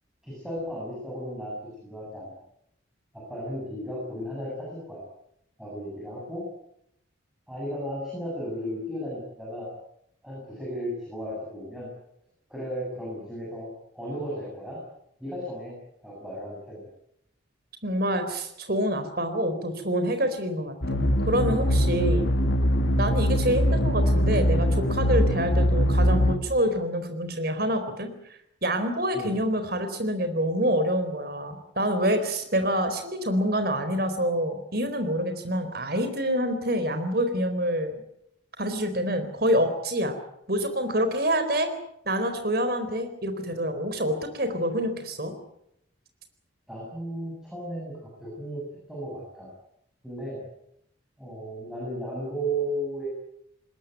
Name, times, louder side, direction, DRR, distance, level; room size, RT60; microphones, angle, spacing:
voice 1, 0.2-1.6 1.8-2.3 3.1-5.0 5.6-6.5 7.5-9.7 10.2-11.9 12.5-13.7 13.9-14.8 15.2-15.8 16.0-16.9 29.1-29.3 46.7-49.5 50.0-50.4 51.2-53.1, right 1 dB, 5° right, -5 dB, 7.7 m, -34 dB
voice 2, 17.8-22.3 23.0-28.1 28.6-38.0 38.6-40.1 40.5-41.7 42.1-45.3, equal, 50° right, 8 dB, 4.2 m, -26 dB
sound 1, 20.8-26.4, equal, 75° left, 2.2 m, -22 dB
21.0 x 20.0 x 9.3 m, 0.78 s
head